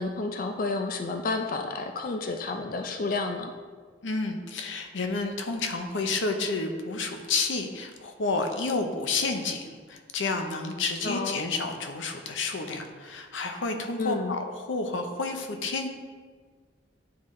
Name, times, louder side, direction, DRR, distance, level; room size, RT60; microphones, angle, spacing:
voice 1, 0.0-3.5 11.0-11.5 14.0-14.4, left 3 dB, 50° left, 5 dB, 0.4 m, -30 dB
voice 2, 4.0-15.9, left 3 dB, 90° left, 5 dB, 0.7 m, -30 dB
9.3 x 3.9 x 3.2 m, 1.5 s
head